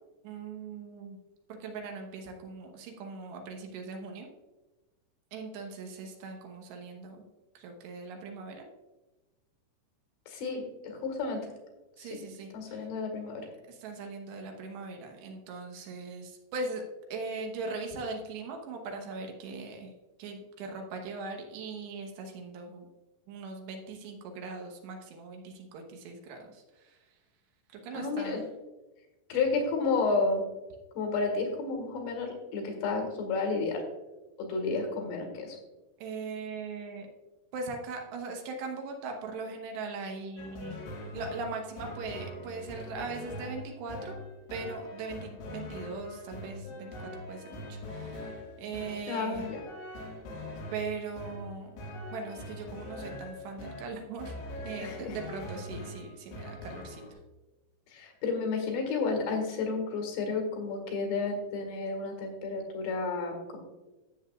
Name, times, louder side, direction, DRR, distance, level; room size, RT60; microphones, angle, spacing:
voice 1, 0.2-1.2 1.6-4.3 5.3-7.2 7.5-8.7 12.0-12.9 13.7-16.8 17.1-19.9 20.2-22.9 23.3-27.0 27.7-28.4 36.0-37.1 37.5-40.8 41.1-44.2 44.5-49.4 50.7-51.8 52.1-54.4 54.6-57.0, right 3 dB, 75° right, 3 dB, 3.2 m, -40 dB
voice 2, 10.3-11.5 12.0-12.1 12.5-13.5 27.9-28.4 29.3-30.4 31.0-33.8 34.4-35.6 49.1-49.6 54.8-55.2 57.9-63.6, left 4 dB, 70° left, 2 dB, 3.8 m, -31 dB
sound 1, 40.4-57.1, left 1 dB, 90° left, 4.2 m, -42 dB
13.0 x 8.1 x 2.4 m, 1.1 s
omnidirectional pair, 5.2 m